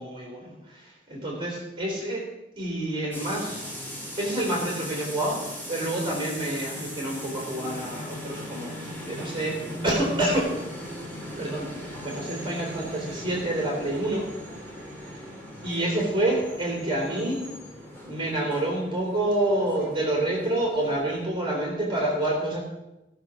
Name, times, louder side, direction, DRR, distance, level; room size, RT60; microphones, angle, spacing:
voice 1, 0.0-2.2 2.6-3.8 4.2-9.6 9.8-10.5 11.4-14.3 15.6-17.4 18.0-22.6, right 1 dB, 30° right, -3 dB, 3.5 m, -28 dB
sound 1, 3.1-21.3, equal, 10° left, 3.0 m, -39 dB
18.0 x 6.3 x 6.0 m, 1.0 s
head